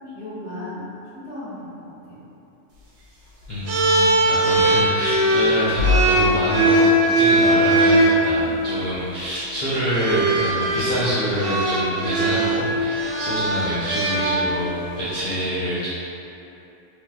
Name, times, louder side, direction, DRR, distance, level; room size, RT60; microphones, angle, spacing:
voice 1, 0.1-2.2 8.4-8.7, left 1 dB, 20° left, -14 dB, 0.9 m, -36 dB
voice 2, 3.5-6.8 7.1-15.9, equal, 70° left, -12 dB, 0.4 m, -26 dB
sound 1, 3.7-8.2 9.2-9.4 9.9-14.7, right 1 dB, 60° right, 0.7 m, -19 dB
3.3 x 2.7 x 2.2 m, 3.0 s
omnidirectional pair, 1.5 m